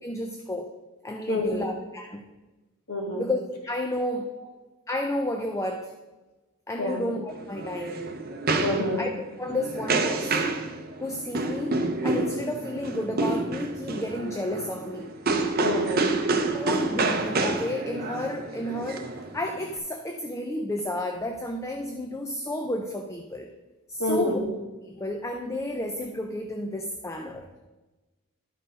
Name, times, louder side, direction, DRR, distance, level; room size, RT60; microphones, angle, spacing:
voice 1, 0.0-0.7 1.0-2.2 3.1-4.4 4.9-5.9 6.7-8.1 9.0-9.1 9.4-10.6 11.0-15.1 16.5-23.5 23.9-24.4 24.9-27.4, left 1 dB, 15° left, 4 dB, 0.4 m, -31 dB
voice 2, 1.3-1.6 2.9-3.2 6.8-7.0 8.6-9.0 15.6-16.1 24.0-24.4, left 1 dB, 90° left, -1 dB, 2.2 m, -27 dB
sound 1, 7.3-19.8, right 3 dB, 45° right, 0.7 m, -28 dB
12.5 x 4.6 x 5.1 m, 1.2 s
head